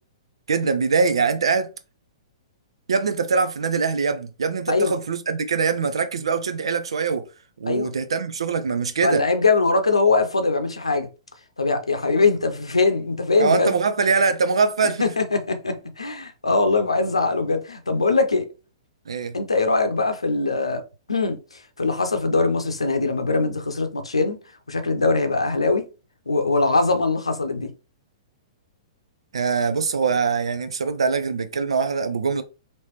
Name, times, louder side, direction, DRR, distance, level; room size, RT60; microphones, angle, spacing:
voice 1, 0.5-1.7 2.9-7.3 7.6-9.2 13.4-15.1 19.1-19.4 29.3-32.4, right 5 dB, 75° right, 0.6 m, -23 dB
voice 2, 9.0-11.1 11.6-13.8 15.0-18.5 19.3-20.8 21.1-24.4 24.7-25.8 26.3-27.7, left 3 dB, 90° left, 0.6 m, -22 dB
3.2 x 2.9 x 2.9 m
hypercardioid pair, 115°, 3 cm